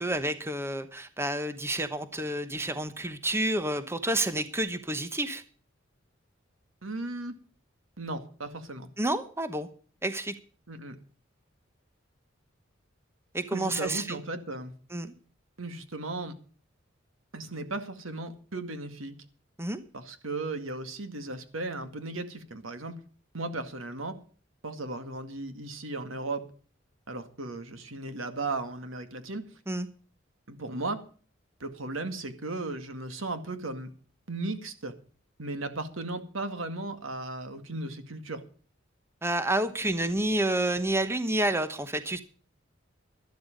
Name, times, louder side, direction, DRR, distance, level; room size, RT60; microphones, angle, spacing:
voice 1, 0.0-5.4 9.0-9.7 10.0-10.3 13.3-14.2 14.9-15.1 19.6-19.8 29.7-29.9 39.2-42.2, right 1 dB, 15° right, 11 dB, 1.0 m, -29 dB
voice 2, 6.8-7.4 8.0-8.9 10.7-11.0 13.5-14.7 15.6-16.3 17.3-19.2 19.9-23.0 23.3-24.1 24.6-26.4 27.1-29.5 30.5-31.0 31.6-33.9 34.3-34.9 35.4-38.4, right 2 dB, 85° right, 9 dB, 2.0 m, -36 dB
13.0 x 12.0 x 5.2 m, 0.41 s
head